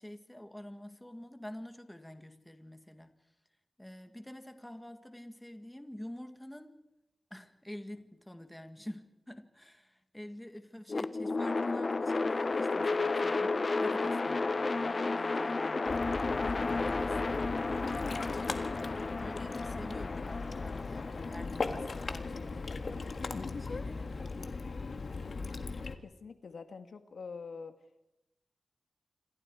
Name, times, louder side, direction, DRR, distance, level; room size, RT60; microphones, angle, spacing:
voice 1, 0.0-3.1 3.8-6.8 7.3-13.5 13.8-17.5 18.1-22.7 23.0-24.3, left 1 dB, 10° left, 7 dB, 2.0 m, -48 dB
sound 1, 10.9-23.0, left 3 dB, 45° left, 1.0 m, -33 dB
Ocean, 15.9-26.0, left 4 dB, 60° left, 1.8 m, -38 dB
voice 2, 26.0-27.7, left 5 dB, 90° left, 8 dB, 1.7 m, -45 dB
27.5 x 27.0 x 4.8 m, 0.89 s
wide cardioid pair, 95°, 0 cm